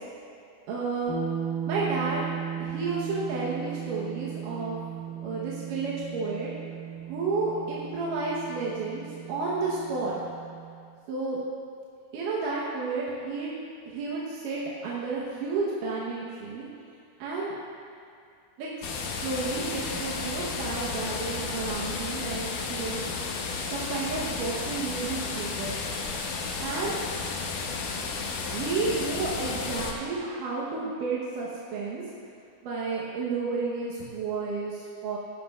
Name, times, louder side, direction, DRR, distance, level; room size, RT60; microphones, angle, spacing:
voice 1, 0.7-1.1 1.7-2.2 2.6-4.8 5.2-6.5 7.1-10.2 11.1-11.4 12.1-13.5 13.9-16.7 17.2-17.5 18.6-23.1 23.7-25.8 26.6-27.0 28.5-32.0 32.6-35.2, right 3 dB, 80° right, -6 dB, 2.6 m, -31 dB
sound 1, 1.1-10.8, right 9 dB, 60° left, 0.7 m, -36 dB
sound 2, 18.8-29.9, left 4 dB, 80° left, 2.5 m, -33 dB
15.0 x 11.5 x 2.4 m, 2.3 s
omnidirectional pair, 3.7 m